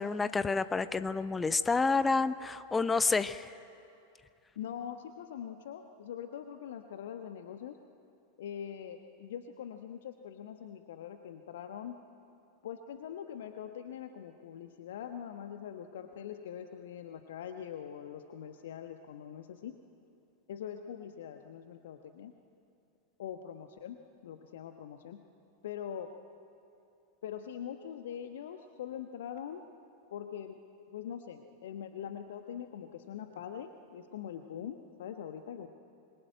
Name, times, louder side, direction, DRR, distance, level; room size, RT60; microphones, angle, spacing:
voice 1, 0.0-3.5, left 4 dB, 15° left, 14 dB, 0.8 m, -29 dB
voice 2, 4.6-7.8 8.4-12.0 12.6-19.7 20.5-22.3 23.2-25.2 25.6-26.1 27.2-29.6 30.1-30.6 30.9-35.7, left 9 dB, 60° left, 7 dB, 1.1 m, -43 dB
26.5 x 23.0 x 9.3 m, 2.7 s
figure-of-eight pair, 90°, 0 cm